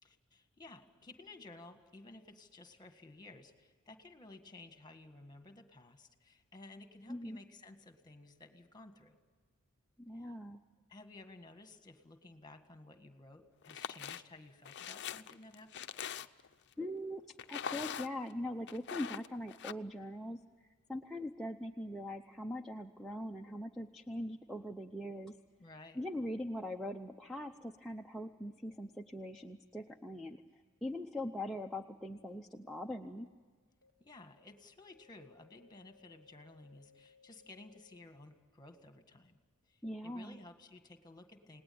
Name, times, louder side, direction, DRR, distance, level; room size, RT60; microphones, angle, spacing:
voice 1, 0.0-9.2 10.1-10.3 10.9-15.9 25.6-26.0 34.0-41.6, left 2 dB, 20° left, 6 dB, 1.8 m, -55 dB
voice 2, 10.0-10.6 16.8-20.4 20.9-25.3 26.0-30.4 30.8-33.3 39.8-40.4, left 1 dB, ahead, 0 dB, 0.7 m, -41 dB
sound 1, 13.6-14.2 14.6-16.5 17.4-18.3 18.7-19.7, left 8 dB, 50° left, 0.6 m, -42 dB
sound 2, 30.2-30.3 31.2-31.3 32.2-32.3 33.2-33.3 33.8-33.9 34.4-34.5 34.9-38.0, left 5 dB, 45° right, 3.2 m, -65 dB
28.5 x 19.0 x 8.7 m, 1.5 s
head